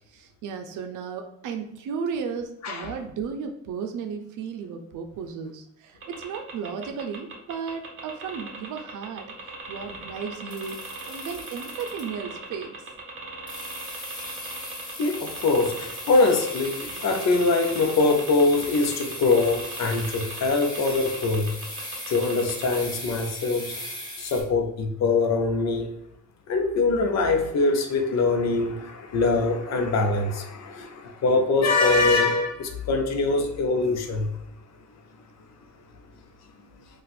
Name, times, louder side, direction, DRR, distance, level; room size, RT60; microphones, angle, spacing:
voice 1, 0.1-9.3 9.7-10.8 11.1-12.8, right 6 dB, 70° right, 6 dB, 0.6 m, -34 dB
sound 1, 6.0-22.7, right 3 dB, 40° right, 0.9 m, -39 dB
sound 2, 10.5-12.3 13.5-24.4, left 1 dB, 15° left, 1.2 m, -38 dB
voice 2, 15.0-21.5 22.1-23.7 24.2-25.9 26.5-34.3, left 3 dB, 55° left, 4 dB, 0.7 m, -23 dB
2.5 x 2.4 x 4.1 m, 0.80 s
cardioid pair, 85°, 32 cm